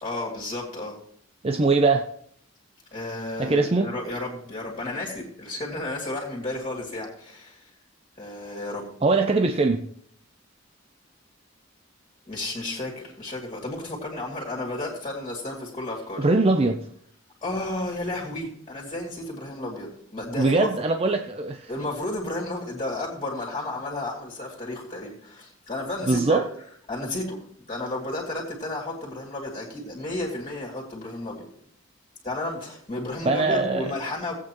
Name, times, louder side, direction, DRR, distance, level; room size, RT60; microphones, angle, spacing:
voice 1, 0.0-1.0 2.9-7.7 8.2-8.9 12.3-16.2 17.4-20.7 21.7-26.4 26.9-27.4 27.7-31.5 32.2-34.3, left 2 dB, 30° left, 2.6 m, -32 dB
voice 2, 1.4-2.1 3.4-3.9 9.0-9.9 16.2-16.9 20.3-21.7 26.1-26.5 33.2-33.9, right 3 dB, 30° right, 0.5 m, -22 dB
17.0 x 8.4 x 3.0 m
head